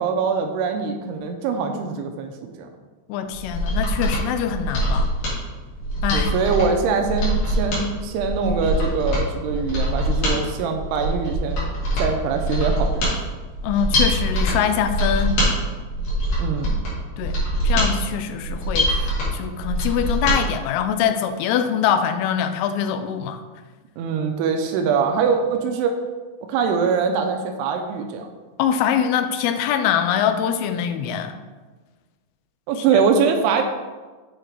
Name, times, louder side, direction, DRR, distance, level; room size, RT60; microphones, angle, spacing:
voice 1, 0.0-2.7 6.1-11.6 12.0-13.2 16.4-16.8 24.0-25.9 26.4-28.3 32.7-33.6, right 5 dB, 85° right, 4 dB, 2.7 m, -23 dB
voice 2, 3.1-5.1 6.0-6.3 13.6-15.4 17.2-23.4 28.6-31.3 32.8-32.9, left 8 dB, 85° left, 9 dB, 2.5 m, -23 dB
Mechanisms, 3.3-20.4 20.7-20.8, equal, 55° left, 3.5 m, -23 dB
8.0 x 4.7 x 4.5 m, 1.3 s
omnidirectional pair, 4.6 m